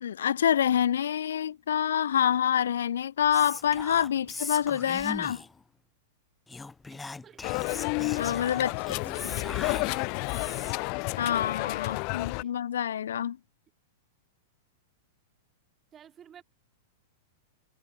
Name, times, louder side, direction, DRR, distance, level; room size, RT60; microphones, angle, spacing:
voice 1, 0.0-5.4 8.1-8.7 11.2-13.4, left 9 dB, 70° left, 1.0 m, -27 dB
Whispering, 3.3-5.6 6.5-10.9, left 3 dB, 10° left, 0.8 m, -40 dB
voice 2, 6.9-7.5 8.5-10.0 12.4-12.6 15.9-16.4, right 9 dB, 25° right, 3.1 m, -55 dB
sound 1, 7.4-12.4, left 35 dB, 45° left, 0.3 m, -31 dB
figure-of-eight pair, 100°, 0 cm